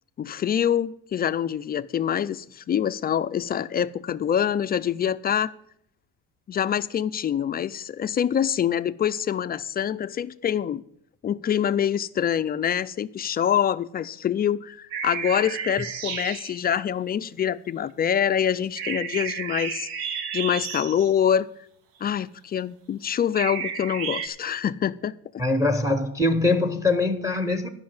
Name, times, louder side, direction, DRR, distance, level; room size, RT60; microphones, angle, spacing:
voice 1, 0.2-5.5 6.5-10.8 11.2-19.9 20.3-21.5 22.0-25.4, left 9 dB, 25° left, 0.3 m, -25 dB
sound 1, 14.9-16.6 18.8-21.1 23.3-24.3, right 7 dB, 80° right, 1.3 m, -32 dB
voice 2, 25.4-27.7, left 2 dB, 10° right, 0.8 m, -23 dB
11.5 x 5.6 x 8.7 m
cardioid pair, 125°, 37 cm